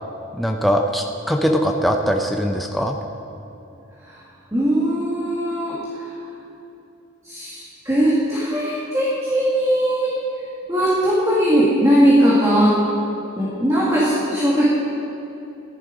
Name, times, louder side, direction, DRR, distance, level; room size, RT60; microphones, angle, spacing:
voice 1, 0.3-3.0, equal, ahead, 2 dB, 0.5 m, -21 dB
voice 2, 4.5-6.1 7.2-12.7 13.4-14.7, equal, 15° right, -7 dB, 2.0 m, -19 dB
14.5 x 11.0 x 5.1 m, 2.8 s
head